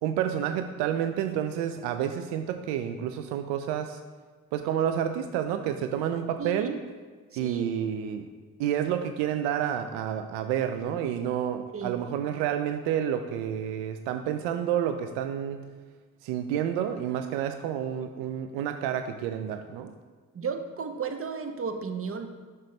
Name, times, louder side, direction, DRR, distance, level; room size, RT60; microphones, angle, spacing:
voice 1, 0.0-4.0 4.5-6.8 7.4-8.3 8.6-15.7 16.2-19.9, right 9 dB, 75° right, 8 dB, 0.5 m, -29 dB
voice 2, 6.4-6.7 7.3-7.7 11.7-11.9 20.3-22.5, right 5 dB, 35° right, 7 dB, 0.8 m, -34 dB
6.3 x 5.4 x 3.2 m, 1.4 s
hypercardioid pair, 45°, 41 cm